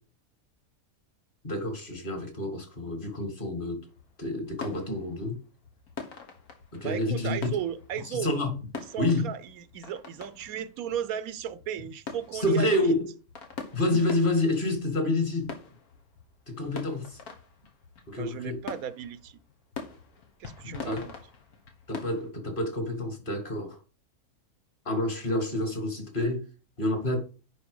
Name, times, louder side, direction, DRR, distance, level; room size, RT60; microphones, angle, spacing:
voice 1, 1.4-3.9 4.2-5.4 6.7-7.6 8.1-8.5 9.0-9.3 12.3-13.1 13.7-15.6 16.5-17.2 18.1-18.6 20.6-21.1 21.9-23.8 24.9-26.5 26.8-27.2, left 1 dB, 35° left, 2.0 m, -28 dB
sound 1, 3.9-22.3, left 5 dB, 85° left, 1.9 m, -45 dB
voice 2, 6.8-8.3 8.9-12.8 18.2-19.4 20.4-21.1, right 9 dB, 80° right, 1.1 m, -35 dB
10.5 x 4.4 x 4.8 m
omnidirectional pair, 1.5 m